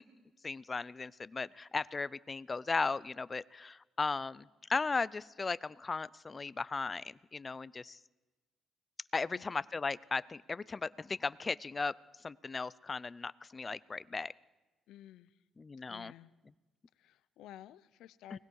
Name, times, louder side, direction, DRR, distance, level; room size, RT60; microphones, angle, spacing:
voice 1, 0.4-8.0 9.1-11.9 12.2-14.3 15.6-16.1 18.3-18.4, left 4 dB, 30° left, 19 dB, 0.6 m, -36 dB
voice 2, 14.9-15.4 15.9-16.3 17.0-18.4, left 13 dB, 85° left, 17 dB, 0.7 m, -53 dB
29.5 x 19.5 x 4.8 m, 1.1 s
cardioid pair, 90°, 0 cm